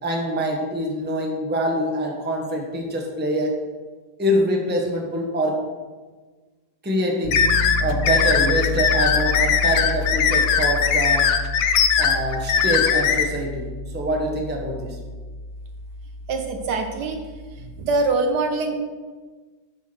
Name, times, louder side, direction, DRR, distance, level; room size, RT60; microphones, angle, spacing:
voice 1, 0.0-3.5 4.2-5.6 6.8-7.4 7.8-11.2 12.0-15.0, equal, 5° right, 0 dB, 0.8 m, -25 dB
Piano, 7.2-18.1, left 1 dB, 35° right, 1.3 m, -31 dB
sound 1, 7.3-13.2, left 7 dB, 65° left, 0.9 m, -20 dB
voice 2, 16.3-17.2 17.6-18.8, right 3 dB, 65° right, 5 dB, 1.3 m, -24 dB
7.1 x 5.8 x 6.0 m, 1.3 s
omnidirectional pair, 2.0 m